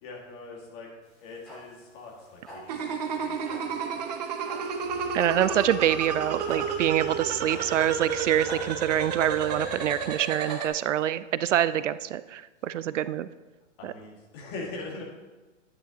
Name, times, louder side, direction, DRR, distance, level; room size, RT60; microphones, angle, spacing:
voice 1, 0.0-4.1 13.8-15.0, left 3 dB, 25° left, -2 dB, 2.0 m, -42 dB
sound 1, 1.0-11.0, equal, ahead, 3.4 m, -47 dB
sound 2, 2.7-10.7, right 6 dB, 35° right, 0.8 m, -32 dB
sound 3, 4.4-10.1, left 2 dB, 75° left, 2.3 m, -47 dB
voice 2, 5.1-13.3, right 11 dB, 75° right, 16 dB, 0.5 m, -26 dB
11.0 x 10.5 x 2.9 m, 1.2 s
hypercardioid pair, 165°, 37 cm